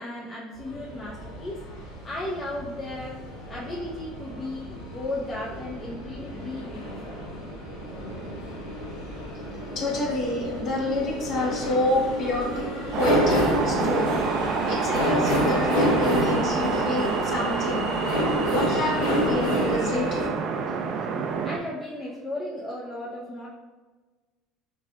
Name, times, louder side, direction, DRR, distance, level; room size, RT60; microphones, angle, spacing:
voice 1, 0.0-3.2 3.5-7.2 9.1-9.5 21.3-23.5, left 1 dB, 30° left, -4 dB, 0.6 m, -35 dB
sound 1, 0.5-20.3, equal, 85° left, 1.1 m, -29 dB
voice 2, 9.7-12.7 13.0-14.1 14.7-17.9 18.5-20.3, left 2 dB, 50° left, -2 dB, 1.2 m, -28 dB
sound 2, 12.9-21.6, right 5 dB, 55° right, 0.4 m, -28 dB
4.7 x 3.2 x 2.3 m, 1.3 s
hypercardioid pair, 80°, 0 cm